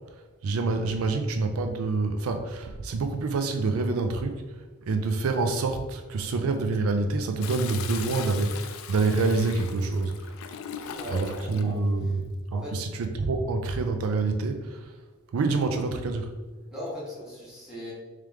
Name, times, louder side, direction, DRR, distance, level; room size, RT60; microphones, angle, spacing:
voice 1, 0.4-4.4 4.9-10.3 11.1-14.9 15.3-16.3, right 3 dB, 85° right, 6 dB, 0.4 m, -27 dB
Toilet flush, 7.4-11.7 13.1-13.6, left 7 dB, 75° left, 0.3 m, -39 dB
voice 2, 10.9-11.8 12.5-12.8 16.7-17.9, left 1 dB, 5° right, -8 dB, 1.3 m, -38 dB
3.3 x 3.2 x 3.5 m, 1.3 s
head